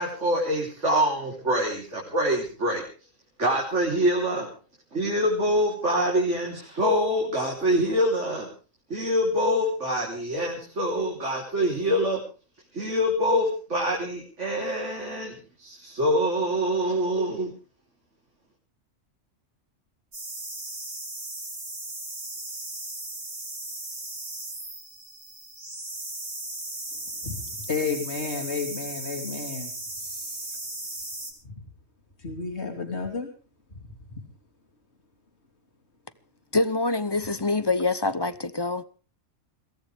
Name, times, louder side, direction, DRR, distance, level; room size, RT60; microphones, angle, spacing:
voice 1, 0.0-2.8 3.4-4.5 4.9-8.5 8.9-12.2 12.7-17.5, equal, 65° right, 4.1 m, -25 dB
sound 1, 20.1-31.3, right 2 dB, 85° right, 5.0 m, -37 dB
voice 2, 27.2-29.7 30.0-30.4 31.4-31.5 32.2-33.3 33.7-34.2, left 4 dB, 55° left, 3.4 m, -32 dB
voice 3, 36.5-38.8, left 3 dB, 20° left, 0.8 m, -25 dB
22.5 x 17.0 x 3.5 m
omnidirectional pair, 1.3 m